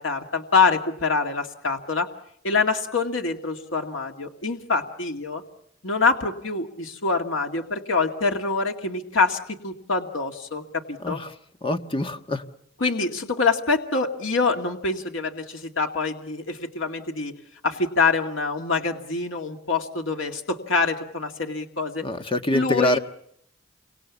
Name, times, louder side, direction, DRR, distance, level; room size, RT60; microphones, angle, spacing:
voice 1, 0.0-2.1 2.4-5.4 5.8-11.2 12.8-17.3 17.6-22.1 22.5-23.0, left 4 dB, 85° left, 4 dB, 2.2 m, -25 dB
voice 2, 11.6-12.4 22.0-23.0, left 1 dB, 25° left, 7 dB, 1.5 m, -25 dB
29.5 x 25.0 x 7.2 m, 0.72 s
head